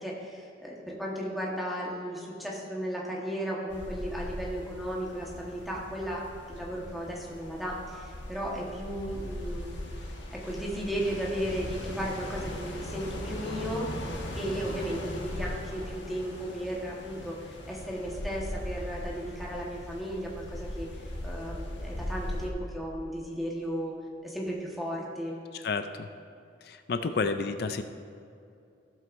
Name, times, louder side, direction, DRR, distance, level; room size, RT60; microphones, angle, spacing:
voice 1, 0.0-6.2 6.5-9.8 10.3-23.9 24.2-25.4, equal, ahead, -4 dB, 1.3 m, -35 dB
sound 1, 3.7-22.5, left 1 dB, 75° left, 1.4 m, -39 dB
voice 2, 25.5-26.1 26.6-27.8, left 4 dB, 55° left, 8 dB, 0.4 m, -31 dB
15.5 x 7.6 x 2.6 m, 2.5 s
head